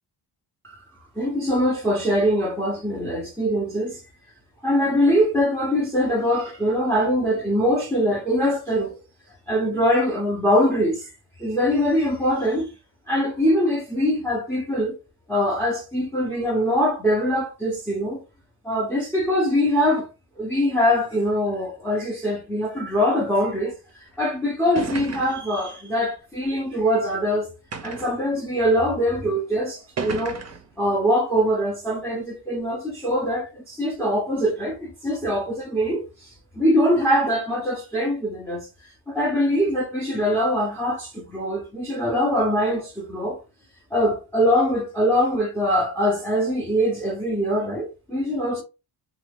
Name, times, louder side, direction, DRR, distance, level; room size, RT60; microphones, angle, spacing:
voice 1, 1.2-4.0 4.6-9.0 9.5-11.1 11.4-12.7 13.1-14.9 15.3-18.2 18.6-20.1 20.4-27.5 27.8-30.4 30.8-36.3 36.5-38.7 39.1-43.4 43.9-48.6, equal, 5° left, 0.8 m, -23 dB
sound 1, 24.1-24.2 24.8-25.5 26.4-26.5 27.7-28.2 29.1-29.2 30.0-30.7, right 5 dB, 35° right, 0.6 m, -33 dB
2.8 x 2.3 x 3.4 m
cardioid pair, 90°, 45 cm